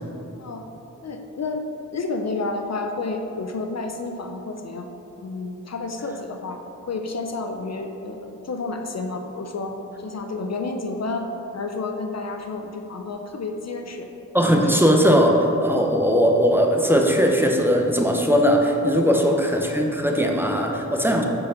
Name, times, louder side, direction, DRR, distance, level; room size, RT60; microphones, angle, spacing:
voice 1, 1.0-4.9 5.2-6.6 6.9-11.3 11.5-14.1 14.5-14.6 15.0-15.1 19.1-19.2, left 3 dB, 55° left, 4 dB, 0.5 m, -30 dB
voice 2, 14.3-21.2, equal, 5° right, 1 dB, 0.7 m, -19 dB
5.0 x 4.7 x 5.5 m, 3.0 s
cardioid pair, 60°, 32 cm